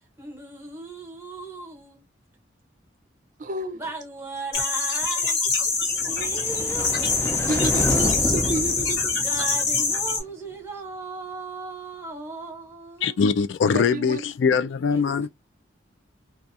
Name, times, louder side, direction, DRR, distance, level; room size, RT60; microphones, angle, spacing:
voice 1, 0.2-2.0 3.7-5.4 5.9-7.0 9.1-13.2 14.9-15.3, right 3 dB, 15° right, 1.0 m, -37 dB
voice 2, 3.4-3.8 7.5-9.2 13.7-14.2, right 2 dB, 40° right, 0.4 m, -30 dB
sound 1, 4.5-10.2, left 4 dB, 60° left, 1.1 m, -24 dB
sound 2, 5.9-10.2, left 1 dB, 15° left, 0.5 m, -29 dB
voice 3, 13.0-15.3, left 5 dB, 75° left, 0.3 m, -22 dB
2.3 x 2.3 x 2.6 m
head